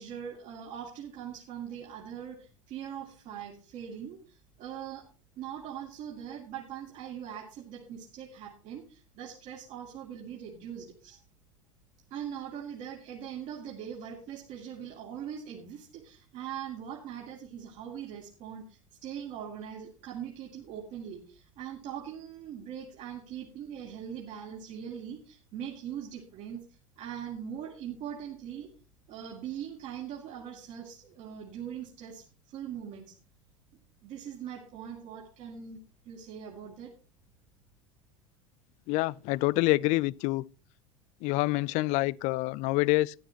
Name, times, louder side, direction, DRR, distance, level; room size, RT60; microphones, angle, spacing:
voice 1, 0.0-5.0 5.4-11.2 12.1-26.6 27.0-28.7 29.1-33.1 34.0-35.8 36.0-36.9, right 9 dB, 45° right, 2.6 m, -41 dB
voice 2, 38.9-40.4 41.2-43.2, left 20 dB, 45° left, 0.4 m, -27 dB
14.0 x 11.5 x 2.9 m
figure-of-eight pair, 75°, 17 cm